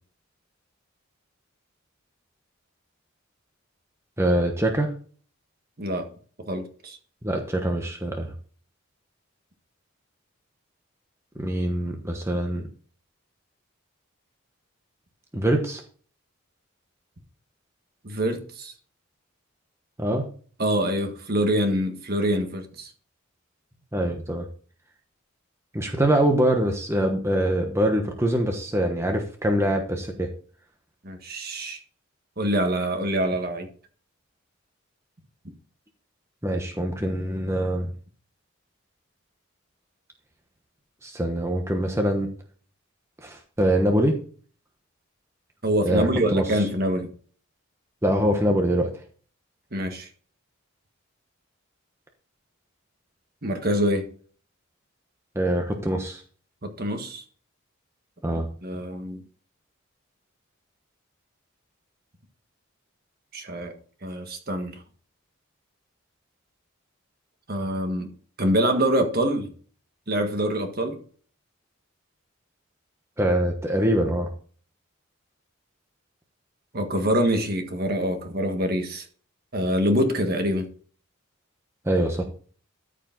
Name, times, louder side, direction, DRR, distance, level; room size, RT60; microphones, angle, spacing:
voice 1, 4.2-4.9 7.2-8.3 11.4-12.6 15.3-15.8 20.0-20.2 23.9-24.4 25.7-30.3 36.4-37.9 41.0-42.3 43.2-44.1 45.8-46.6 48.0-48.9 55.3-56.2 58.2-58.5 73.2-74.3 81.8-82.2, right 1 dB, 15° right, 1.1 m, -24 dB
voice 2, 5.8-6.1 6.4-7.0 18.0-18.7 20.6-22.9 31.0-31.8 32.4-33.7 45.6-47.1 49.7-50.1 53.4-54.1 56.6-57.2 58.3-59.2 63.3-63.7 64.0-64.8 67.5-68.1 68.4-69.5 70.1-71.0 76.7-79.0 79.5-80.7, equal, 45° right, 1.5 m, -25 dB
13.5 x 5.0 x 3.9 m
head